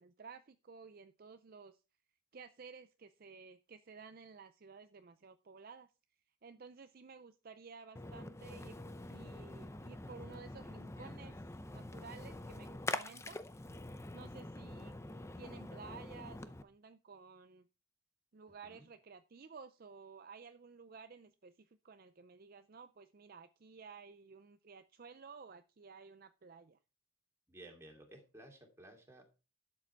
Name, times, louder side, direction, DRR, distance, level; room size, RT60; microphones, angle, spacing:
voice 1, 0.0-1.8 2.3-5.9 6.4-13.4 14.1-14.9 15.4-17.7 18.3-26.8, right 5 dB, 45° right, 10 dB, 0.5 m, -54 dB
Splash splatter, 8.0-16.6, left 2 dB, 15° left, 0.6 m, -45 dB
voice 2, 27.5-29.3, right 1 dB, 15° right, 1 dB, 2.7 m, -55 dB
12.0 x 7.5 x 4.5 m, 0.32 s
head